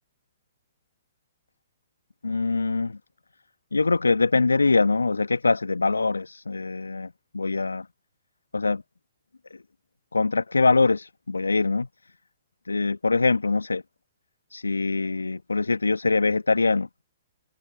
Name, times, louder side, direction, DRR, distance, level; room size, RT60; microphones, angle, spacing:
voice 1, 2.2-3.0 3.7-7.9 8.5-8.8 9.5-9.6 10.1-11.9 12.7-13.8 14.5-16.9, left 3 dB, 80° left, 1.3 m, -23 dB
figure-of-eight pair, 120°, 0 cm